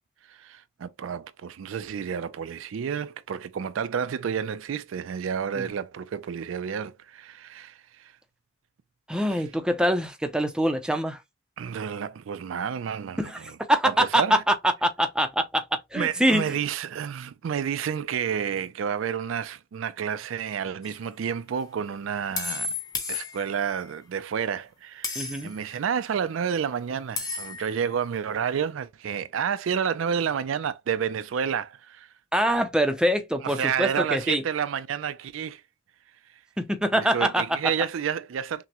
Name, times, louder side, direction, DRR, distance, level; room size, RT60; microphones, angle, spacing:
voice 1, 0.3-8.1 11.6-13.6 13.8-14.4 15.9-22.7 23.1-32.1 33.4-35.6 36.9-38.6, right 7 dB, 75° right, 0.4 m, -30 dB
voice 2, 9.1-11.2 13.2-13.4 13.7-15.6 15.9-16.5 25.2-25.5 32.3-34.4 36.6-37.6, equal, 5° right, 0.5 m, -24 dB
sound 1, 20.8-21.0 22.4-23.8 25.0-25.7 27.2-27.8, left 4 dB, 20° left, 1.0 m, -33 dB
5.9 x 2.1 x 2.9 m
head